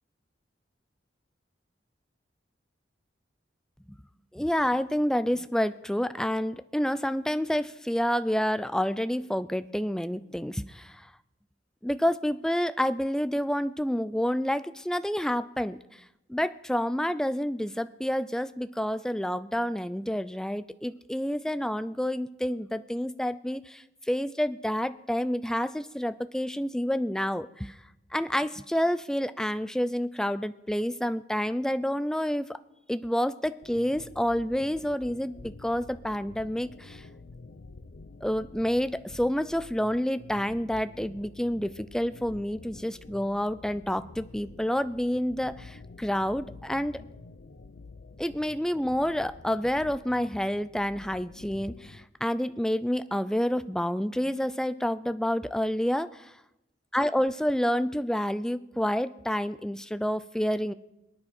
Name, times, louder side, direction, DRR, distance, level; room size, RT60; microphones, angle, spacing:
voice 1, 4.3-11.1 11.8-15.8 16.3-27.7 28.1-32.6 32.9-37.0 38.2-47.0 48.2-56.3 56.9-60.7, equal, 5° left, 13 dB, 0.4 m, -29 dB
sound 1, 33.6-52.1, left 3 dB, 80° left, 0.7 m, -49 dB
23.0 x 9.7 x 4.4 m, 0.89 s
head